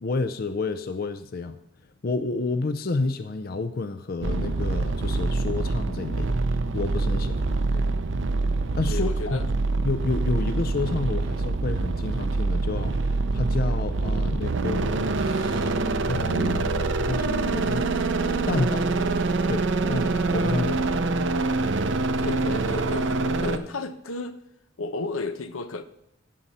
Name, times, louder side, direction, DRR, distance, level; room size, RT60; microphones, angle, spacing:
voice 1, 0.0-1.6 2.0-7.5 8.7-9.5 9.8-15.8 16.1-17.9 18.5-18.9 19.5-21.0, left 3 dB, 45° left, 10 dB, 0.5 m, -30 dB
sound 1, 4.2-23.6, right 3 dB, 60° right, 0.7 m, -25 dB
voice 2, 8.9-9.5 18.7-19.1 22.2-24.4 24.8-25.8, left 3 dB, 90° left, 10 dB, 0.9 m, -34 dB
16.0 x 6.7 x 4.2 m, 0.82 s
head